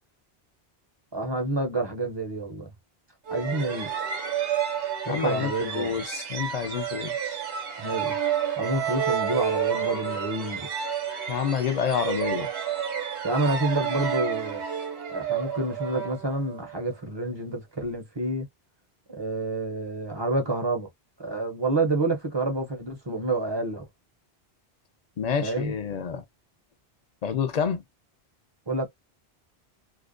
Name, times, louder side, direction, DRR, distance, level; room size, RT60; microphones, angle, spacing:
voice 1, 1.1-2.7 3.3-3.9 5.1-6.0 7.8-8.2 8.6-10.7 13.2-14.6 15.1-18.5 19.1-20.9 21.2-23.9 25.4-25.7 28.7-28.9, right 2 dB, 35° right, 0.5 m, -28 dB
sound 1, 3.3-16.8, right 8 dB, 65° right, 0.9 m, -30 dB
voice 2, 5.1-7.4 11.3-12.5 25.2-26.2 27.2-27.8, left 7 dB, 55° left, 0.4 m, -28 dB
2.4 x 2.1 x 2.4 m
omnidirectional pair, 1.1 m